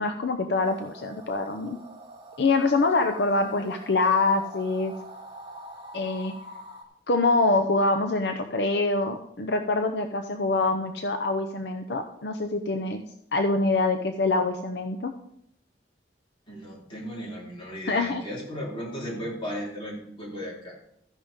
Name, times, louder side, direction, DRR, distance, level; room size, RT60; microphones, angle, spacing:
voice 1, 0.0-1.8 2.4-4.9 5.9-6.4 7.1-13.0 13.3-15.1 17.9-18.2, left 3 dB, 70° left, 6 dB, 0.7 m, -25 dB
sound 1, 0.6-6.8, right 1 dB, 30° right, 2.0 m, -44 dB
voice 2, 16.5-21.0, equal, 30° left, -4 dB, 4.0 m, -36 dB
13.5 x 10.5 x 3.6 m, 0.75 s
head